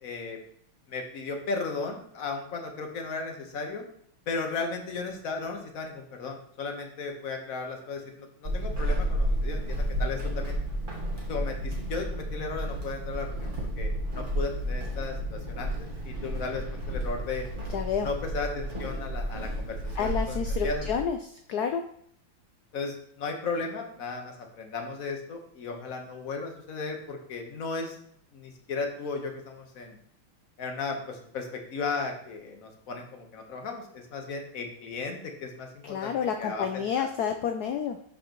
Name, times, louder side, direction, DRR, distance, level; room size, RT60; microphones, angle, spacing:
voice 1, 0.0-0.4 0.9-3.8 4.3-10.6 11.3-17.5 18.0-20.9 22.7-28.0 28.3-30.0 30.6-37.1, left 4 dB, 45° left, 3 dB, 1.4 m, -35 dB
Walk footsteps / Squeak, 8.4-21.1, equal, 25° right, 1.4 m, -32 dB
voice 2, 17.7-18.1 20.0-21.2 21.5-21.8 35.8-38.0, left 7 dB, 85° left, 6 dB, 0.8 m, -29 dB
11.5 x 5.0 x 3.0 m, 0.66 s
omnidirectional pair, 2.3 m